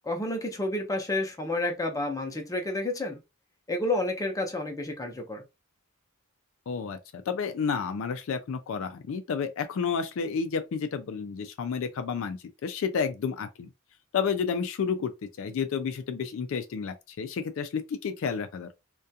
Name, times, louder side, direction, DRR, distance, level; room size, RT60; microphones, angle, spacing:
voice 1, 0.1-3.2 3.7-5.4, left 2 dB, 15° left, 0.6 m, -30 dB
voice 2, 6.7-13.7 14.1-15.1 15.4-18.7, left 6 dB, 65° left, 0.3 m, -31 dB
2.3 x 2.2 x 2.7 m
head